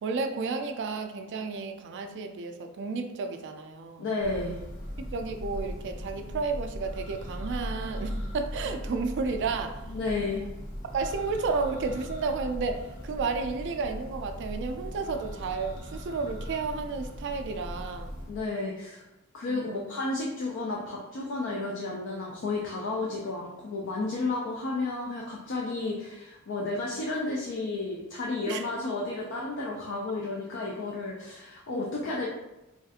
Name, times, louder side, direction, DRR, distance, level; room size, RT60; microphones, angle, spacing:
voice 1, 0.0-4.1 5.0-9.8 10.9-18.1 19.5-19.9 28.5-28.7, right 4 dB, 55° right, 6 dB, 0.3 m, -32 dB
voice 2, 4.0-4.6 9.9-10.4 18.3-19.0 19.3-32.3, left 3 dB, 60° left, -3 dB, 0.4 m, -32 dB
Church bell, 4.2-18.5, equal, 40° left, 1.1 m, -39 dB
3.1 x 2.4 x 2.7 m, 0.98 s
head